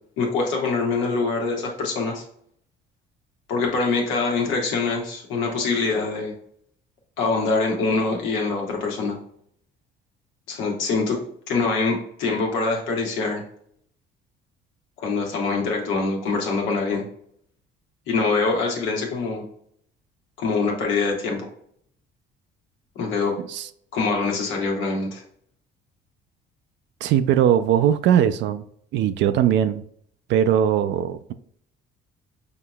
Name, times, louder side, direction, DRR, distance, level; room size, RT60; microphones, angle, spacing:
voice 1, 0.2-2.2 3.5-6.3 7.2-9.2 10.5-11.2 11.5-13.4 15.0-17.0 18.1-19.4 20.4-21.5 22.9-23.3 23.9-25.2, left 4 dB, 90° left, 1.4 m, -24 dB
voice 2, 27.0-28.6 28.9-29.8 30.3-31.3, right 10 dB, 70° right, 0.4 m, -20 dB
5.8 x 2.9 x 2.2 m
cardioid pair, 100°, 20 cm